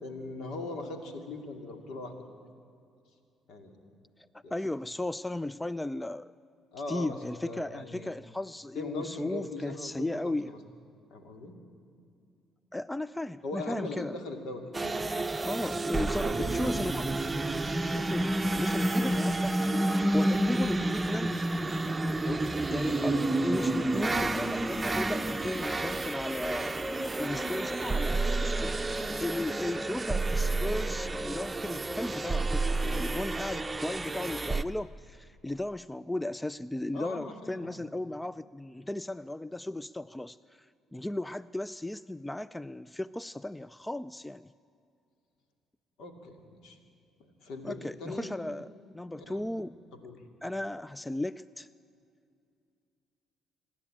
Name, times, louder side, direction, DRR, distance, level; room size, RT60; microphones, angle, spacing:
voice 1, 0.0-2.3 3.5-3.7 4.4-4.5 6.7-7.2 7.4-8.1 8.7-10.6 11.1-11.6 13.4-15.2 15.6-15.7 16.1-16.9 17.8-18.1 22.2-23.3 36.9-37.7 46.0-46.8 47.4-48.3 49.1-49.5 50.0-50.2, left 2 dB, 70° left, 5 dB, 2.5 m, -40 dB
voice 2, 4.5-6.3 6.9-10.5 12.7-14.1 15.4-17.1 18.1-21.4 22.7-23.1 23.4-28.8 29.2-40.4 40.9-44.5 47.6-48.7 48.9-49.8 50.4-51.7, left 1 dB, 10° left, 18 dB, 0.4 m, -36 dB
sound 1, 14.7-34.6, right 2 dB, 20° right, 0.8 m, -30 dB
27.5 x 10.5 x 8.9 m, 2.5 s
hypercardioid pair, 55°, 0 cm